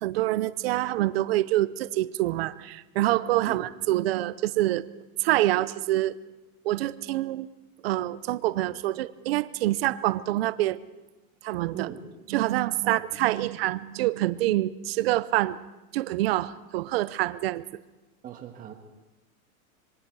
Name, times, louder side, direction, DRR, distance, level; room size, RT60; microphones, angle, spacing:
voice 1, 0.0-4.9 5.2-6.2 6.6-7.5 7.8-10.8 11.4-11.9 12.3-15.6 15.9-17.6, right 16 dB, 45° right, 16 dB, 0.7 m, -26 dB
voice 2, 18.2-18.7, right 10 dB, 20° right, 5 dB, 1.6 m, -39 dB
26.5 x 22.0 x 4.8 m, 1.1 s
supercardioid pair, 170°, 44 cm